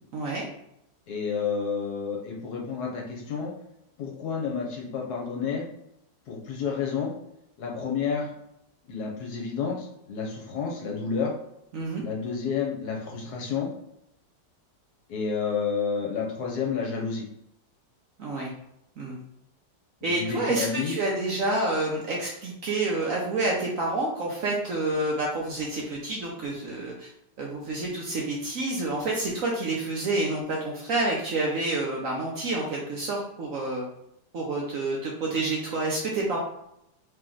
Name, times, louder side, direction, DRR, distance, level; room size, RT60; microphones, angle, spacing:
voice 1, 0.1-0.4 11.7-12.0 18.2-18.5 19.0-19.2 20.0-27.1 27.4-33.9 34.3-36.4, right 2 dB, 60° right, -2 dB, 0.9 m, -28 dB
voice 2, 1.1-3.5 4.0-5.7 6.3-7.1 7.6-8.3 8.8-11.3 12.0-13.7 15.1-17.3 20.0-21.0, left 6 dB, 65° left, -1 dB, 1.3 m, -30 dB
3.3 x 3.0 x 3.8 m, 0.78 s
omnidirectional pair, 1.9 m